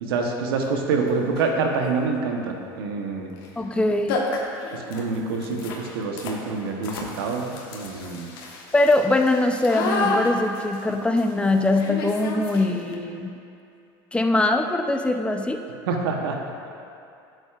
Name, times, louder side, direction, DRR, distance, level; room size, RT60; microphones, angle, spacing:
voice 1, 0.0-3.3 4.7-8.3 15.9-16.4, right 4 dB, 90° right, 2 dB, 1.0 m, -26 dB
sound 1, 0.6-0.7 1.3-1.6 3.3-3.5 3.8-3.9 4.1-12.9, left 3 dB, 80° left, 1.2 m, -31 dB
voice 2, 3.6-4.2 8.7-13.4 14.1-15.6, left 2 dB, 10° left, 5 dB, 0.6 m, -22 dB
11.0 x 8.0 x 2.5 m, 2.6 s
supercardioid pair, 100°, 12 cm